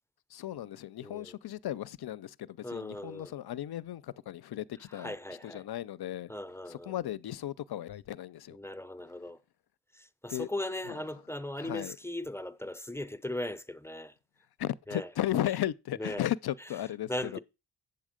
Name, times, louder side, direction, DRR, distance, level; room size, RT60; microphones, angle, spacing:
voice 1, 0.3-5.1 5.4-6.3 6.7-8.6 10.3-10.5 10.9-11.0 11.6-12.0 14.6-17.4, left 12 dB, 65° left, 0.5 m, -35 dB
voice 2, 1.0-1.4 2.6-3.3 4.9-5.6 6.3-7.0 8.5-9.4 9.9-14.1 14.9-15.1 16.0-16.2 17.1-17.4, left 1 dB, 5° left, 0.5 m, -38 dB
7.9 x 7.3 x 5.0 m
wide cardioid pair, 85°, 42 cm